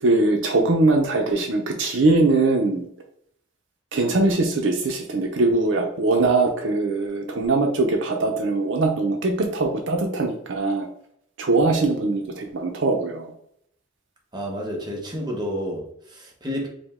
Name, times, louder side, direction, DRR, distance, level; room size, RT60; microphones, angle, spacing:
voice 1, 0.0-2.9 3.9-10.9 11.4-13.3, right 2 dB, 60° right, 3 dB, 0.5 m, -21 dB
voice 2, 14.3-16.7, equal, 20° right, 0 dB, 0.8 m, -30 dB
5.0 x 2.1 x 3.5 m, 0.71 s
head